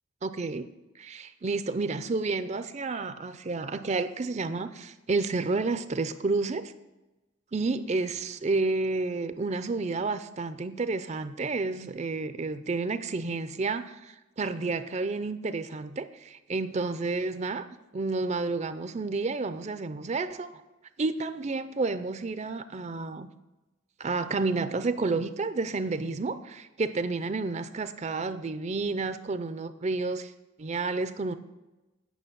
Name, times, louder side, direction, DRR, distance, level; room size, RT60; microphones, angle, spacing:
voice 1, 0.2-0.7 1.0-6.7 7.5-17.7 17.9-20.5 21.0-23.3 24.0-30.3 30.6-31.3, right 3 dB, 35° right, 12 dB, 0.5 m, -30 dB
9.3 x 5.9 x 7.3 m, 1.1 s
head